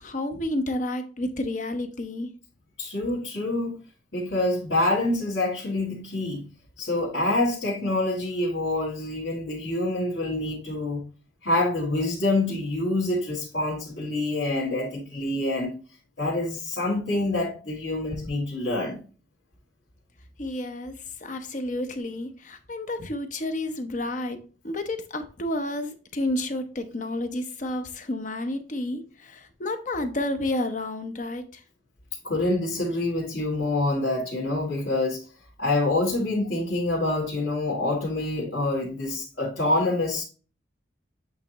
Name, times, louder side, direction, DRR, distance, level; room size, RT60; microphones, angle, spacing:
voice 1, 0.0-2.3 20.4-24.4 24.6-31.6, left 1 dB, 40° left, 0.7 m, -30 dB
voice 2, 2.8-3.8 4.1-6.5 6.8-11.0 11.4-15.8 16.2-19.0 32.2-35.2 35.6-40.2, left 2 dB, 65° left, 1.9 m, -26 dB
8.2 x 3.0 x 4.0 m
head